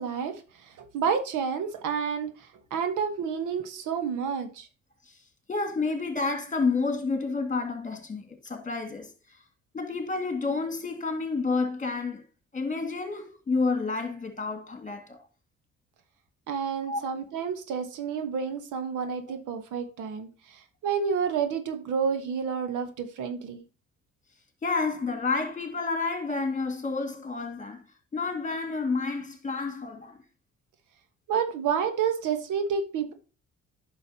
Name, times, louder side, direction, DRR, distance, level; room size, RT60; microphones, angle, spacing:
voice 1, 0.0-4.7 16.5-23.6 31.3-33.1, right 6 dB, 85° right, 1.2 m, -30 dB
voice 2, 5.5-9.1 9.7-12.2 12.5-15.2 16.9-17.0 24.6-27.8 28.1-30.2, left 4 dB, 25° left, 2.0 m, -29 dB
9.6 x 6.1 x 2.8 m
cardioid pair, 90°, 30 cm